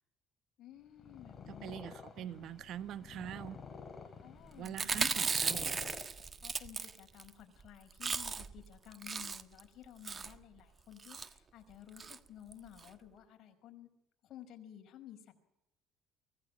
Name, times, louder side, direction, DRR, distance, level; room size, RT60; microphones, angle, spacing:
voice 1, 0.6-1.8 4.2-5.3 6.4-13.9 14.2-15.3, left 11 dB, 55° left, 5.1 m, -54 dB
Purr, 0.9-6.6, left 5 dB, 30° left, 3.6 m, -50 dB
voice 2, 1.5-3.6 4.6-6.0, right 10 dB, 60° right, 1.0 m, -44 dB
Chewing mastication, 4.7-7.3 7.6-7.7 7.9-8.6 8.9-9.6 10.0-10.4 11.0-11.3 12.0-12.2 12.5-12.6 12.8-12.9, right 5 dB, 30° right, 1.4 m, -36 dB
24.5 x 18.0 x 8.5 m
cardioid pair, 110°, 0 cm